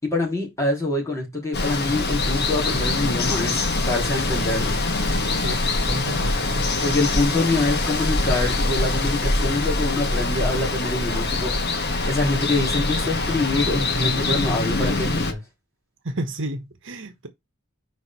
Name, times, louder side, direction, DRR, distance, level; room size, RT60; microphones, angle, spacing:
voice 1, 0.0-4.9 6.8-11.8 12.0-15.4, left 2 dB, 15° left, 3.7 m, -25 dB
Water, 1.5-15.3, left 2 dB, 50° left, 1.5 m, -24 dB
voice 2, 5.4-6.7 16.0-17.3, right 1 dB, 65° right, 1.3 m, -31 dB
5.2 x 5.0 x 6.0 m
head